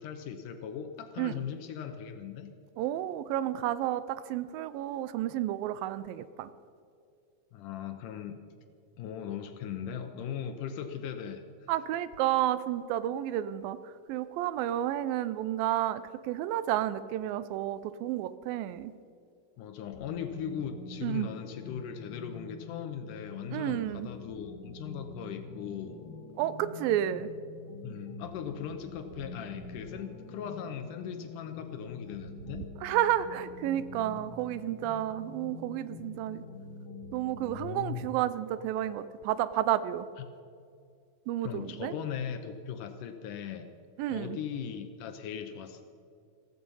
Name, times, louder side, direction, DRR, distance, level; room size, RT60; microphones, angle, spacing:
voice 1, 0.0-2.5 7.5-8.4 9.0-11.7 19.6-26.0 27.8-32.6 37.4-38.1 40.2-40.3 41.4-43.7 44.1-45.8, left 8 dB, 75° left, 7 dB, 2.0 m, -39 dB
voice 2, 2.8-6.5 11.7-18.9 21.0-21.3 23.5-24.1 26.4-27.3 32.8-36.4 37.1-40.1 41.3-41.9 44.0-44.4, right 12 dB, 80° right, 15 dB, 2.3 m, -31 dB
sound 1, 19.9-37.6, left 3 dB, 45° left, 3.0 m, -46 dB
15.0 x 15.0 x 5.5 m, 2.4 s
omnidirectional pair, 4.3 m